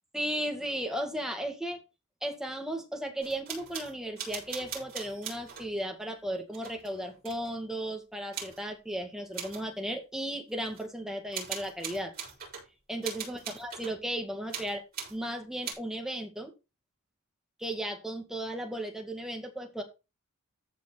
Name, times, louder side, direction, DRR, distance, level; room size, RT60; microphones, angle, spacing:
voice 1, 0.1-1.8 2.2-12.1 12.9-14.8 15.1-16.5 17.6-19.8, right 1 dB, ahead, 2.1 m, -35 dB
sound 1, 3.2-5.7 6.5-7.5 8.3-8.6 9.3-9.7 10.7-10.8 11.3-12.7 13.0-14.0 14.5-15.2 15.6-15.7, right 7 dB, 45° right, 6.9 m, -40 dB
15.0 x 5.2 x 4.3 m
head